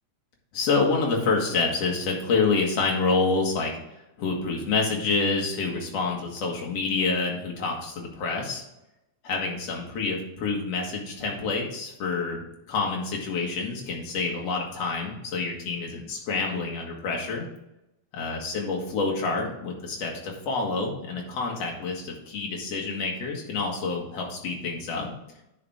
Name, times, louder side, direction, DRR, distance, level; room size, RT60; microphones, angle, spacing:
voice 1, 0.5-3.7 4.2-8.6 9.2-12.4 12.7-17.5 18.1-25.2, left 4 dB, 50° left, 0 dB, 2.4 m, -27 dB
9.7 x 5.9 x 3.6 m, 0.88 s
omnidirectional pair, 4.3 m